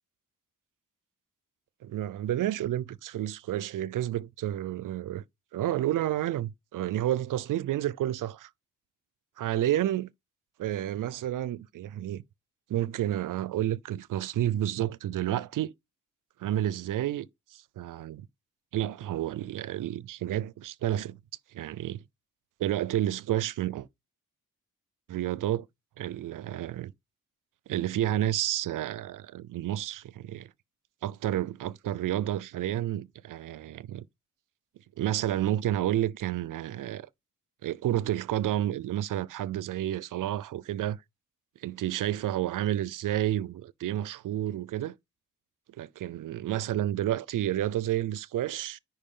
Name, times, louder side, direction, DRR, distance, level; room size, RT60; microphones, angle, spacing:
voice 1, 1.8-5.2 5.5-8.5 9.4-10.1 10.6-12.2 12.7-15.7 16.4-18.2 18.7-21.2 21.5-22.0 22.6-23.9 25.1-25.7 26.0-26.9 27.7-30.5 31.0-34.1 35.0-37.1 37.6-41.0 41.6-45.0 45.8-48.8, right 12 dB, 80° right, 0.5 m, -30 dB
10.0 x 4.6 x 3.7 m
wide cardioid pair, 170°, 32 cm